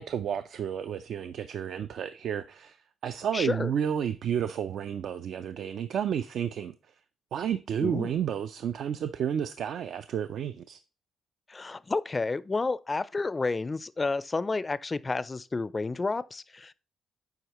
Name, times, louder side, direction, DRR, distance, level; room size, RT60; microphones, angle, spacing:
voice 1, 0.0-2.8 3.0-6.7 7.3-10.8, right 8 dB, 65° right, 0.3 m, -31 dB
voice 2, 3.3-3.7 7.8-8.1 11.5-16.7, left 3 dB, 25° left, 0.4 m, -30 dB
8.0 x 4.6 x 2.9 m
cardioid pair, 90°, 0 cm